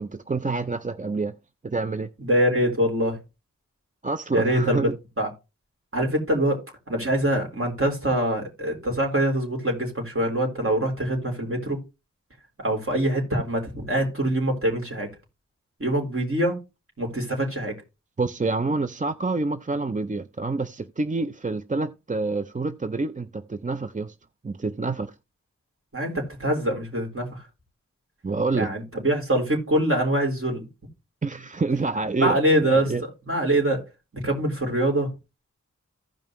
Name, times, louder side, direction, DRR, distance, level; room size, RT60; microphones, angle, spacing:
voice 1, 0.0-1.4 1.6-2.1 4.0-5.0 18.2-24.1 24.4-25.1 28.2-28.7 31.2-33.0, right 3 dB, 25° right, 0.5 m, -27 dB
voice 2, 2.2-3.2 4.3-4.9 5.2-5.3 5.9-11.8 12.6-15.1 15.8-16.6 17.0-17.7 25.9-27.4 28.5-30.7 32.2-32.9 33.3-33.8 34.2-35.1, right 1 dB, 45° right, 3.8 m, -24 dB
15.5 x 5.3 x 3.0 m
wide cardioid pair, 65°, 29 cm